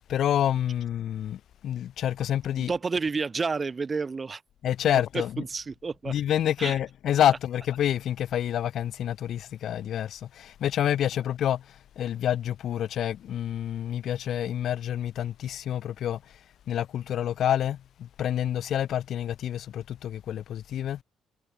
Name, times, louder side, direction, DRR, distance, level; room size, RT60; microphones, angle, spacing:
voice 1, 0.1-2.7 4.6-5.4 6.1-21.0, left 10 dB, 70° left, 1.0 m, -28 dB
voice 2, 2.6-4.4 5.1-6.1 6.6-6.7, right 4 dB, 30° right, 2.1 m, -30 dB
cardioid pair, 90°, 0 cm